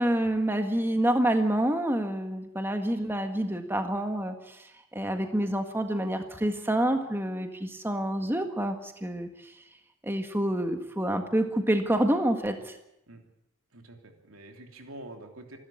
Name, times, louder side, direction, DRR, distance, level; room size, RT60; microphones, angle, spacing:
voice 1, 0.0-9.5 10.0-12.7, right 1 dB, 10° right, 5 dB, 1.6 m, -28 dB
voice 2, 13.7-15.6, right 1 dB, 85° right, 4 dB, 3.2 m, -46 dB
27.0 x 12.5 x 8.6 m, 0.83 s
head